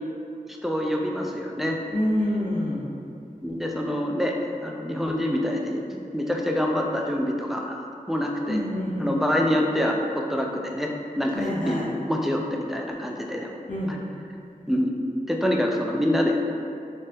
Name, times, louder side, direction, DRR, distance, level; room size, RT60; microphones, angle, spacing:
voice 1, 0.5-1.8 3.0-3.1 3.4-4.4 4.6-8.6 9.0-10.9 11.2-13.5 14.7-14.9 15.3-16.4, left 1 dB, ahead, 0 dB, 0.3 m, -26 dB
voice 2, 1.9-2.8 8.5-9.2 11.3-11.8 13.7-14.0, left 1 dB, 65° left, -6 dB, 0.7 m, -27 dB
3.4 x 2.0 x 2.7 m, 2.4 s
wide cardioid pair, 45°, 15 cm